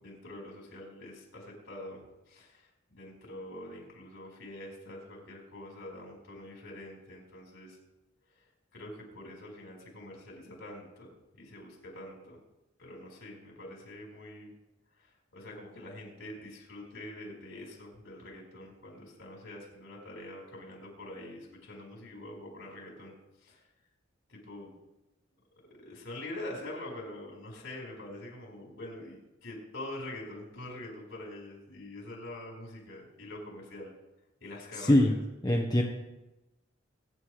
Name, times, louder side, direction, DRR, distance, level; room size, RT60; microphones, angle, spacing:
voice 1, 0.0-7.8 8.7-12.4 12.8-14.5 14.9-23.1 23.4-23.6 24.3-24.8 25.7-33.9 34.4-35.2, left 1 dB, 75° left, -1 dB, 4.7 m, -45 dB
voice 2, 34.8-35.1 35.4-35.8, left 1 dB, 20° left, 0 dB, 1.2 m, -23 dB
23.5 x 9.6 x 3.3 m, 0.98 s
head